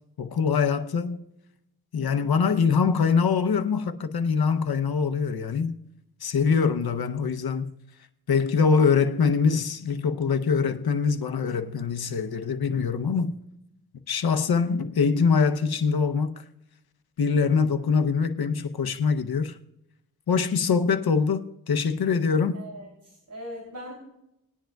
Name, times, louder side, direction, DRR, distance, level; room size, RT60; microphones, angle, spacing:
voice 1, 0.2-1.2 1.9-5.8 6.2-7.7 8.3-13.4 14.1-16.4 17.2-19.6 20.3-22.6, left 5 dB, 90° left, 0.8 m, -23 dB
voice 2, 22.5-23.9, equal, 60° right, 3.1 m, -40 dB
20.0 x 10.0 x 2.3 m
cardioid pair, 50°, 36 cm